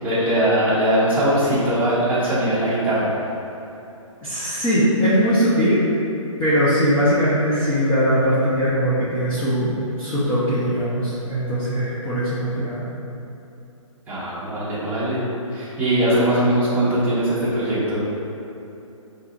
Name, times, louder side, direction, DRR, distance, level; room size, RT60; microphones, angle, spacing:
voice 1, 0.0-3.1 14.1-15.2 15.5-18.0, right 1 dB, 10° right, -11 dB, 0.8 m, -20 dB
voice 2, 4.2-5.8 6.4-12.8, equal, 10° left, -12 dB, 0.4 m, -20 dB
5.4 x 2.9 x 2.4 m, 2.8 s
hypercardioid pair, 150°, 17 cm